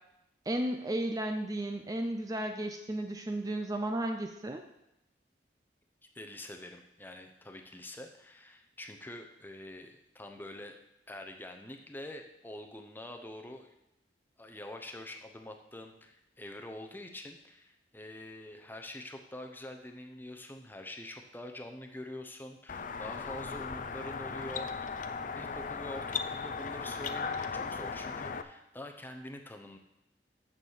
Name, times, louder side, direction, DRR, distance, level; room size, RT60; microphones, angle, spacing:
voice 1, 0.5-4.6, right 1 dB, 20° right, 5 dB, 0.5 m, -34 dB
voice 2, 6.1-10.8 11.1-13.7 14.4-24.9 25.3-29.8, left 1 dB, 10° left, 4 dB, 0.8 m, -45 dB
sound 1, 22.7-28.4, left 5 dB, 45° left, 0.5 m, -37 dB
7.4 x 6.7 x 6.5 m, 0.86 s
head